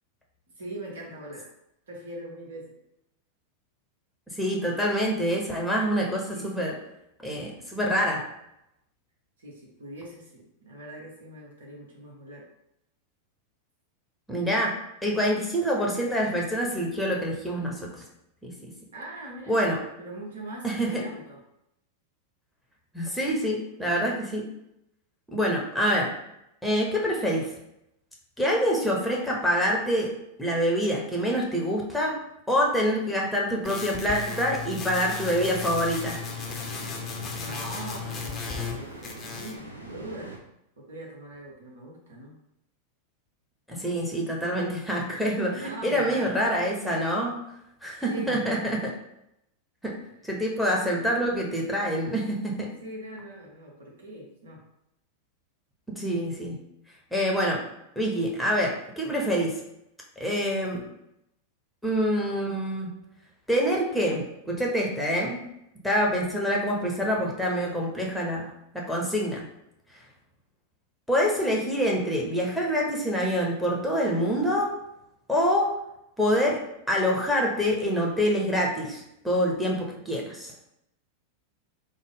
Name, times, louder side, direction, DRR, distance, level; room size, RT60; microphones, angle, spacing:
voice 1, 0.6-1.4 1.9-2.6 6.3-6.4 9.4-12.4 18.9-19.6 20.0-21.4 37.4-40.4 40.8-42.4 45.6-46.3 48.1-48.6 52.8-54.6, right 1 dB, 65° right, -3 dB, 1.1 m, -41 dB
voice 2, 4.4-6.7 7.2-8.2 14.3-14.7 15.0-17.9 18.4-18.7 19.5-19.8 20.6-21.0 22.9-24.4 25.3-26.1 26.6-27.5 28.4-30.1 30.4-32.1 32.5-36.2 43.7-47.3 47.8-48.8 49.8-49.9 50.2-52.7 55.9-56.6 57.1-57.6 58.0-59.6 60.2-60.8 61.8-62.9 63.5-65.4 65.8-69.5 71.1-74.7 75.3-75.7 76.2-76.6 76.9-80.5, equal, ahead, -2 dB, 0.9 m, -26 dB
sound 1, 33.6-38.8 39.0-39.6, left 6 dB, 25° left, 0.6 m, -35 dB
sound 2, 34.7-40.4, right 2 dB, 80° right, 0.5 m, -43 dB
3.5 x 2.1 x 3.5 m, 0.83 s
figure-of-eight pair, 90°, 0 cm